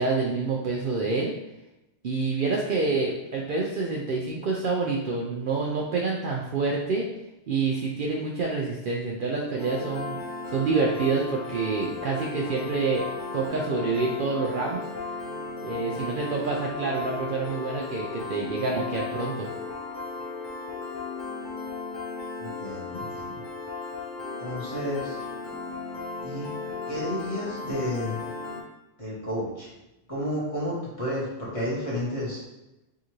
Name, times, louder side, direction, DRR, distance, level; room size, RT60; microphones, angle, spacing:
voice 1, 0.0-1.3 2.0-7.1 7.5-10.2 10.5-14.8 15.6-19.5, right 4 dB, 60° right, -2 dB, 0.6 m, -27 dB
Piano, 9.6-28.6, left 4 dB, 45° left, 0.8 m, -35 dB
voice 2, 22.4-23.4 24.4-25.2 26.2-26.5 26.9-28.2 29.0-29.7 30.1-32.4, equal, 30° left, -7 dB, 1.2 m, -31 dB
4.7 x 2.6 x 3.0 m, 0.92 s
omnidirectional pair, 1.2 m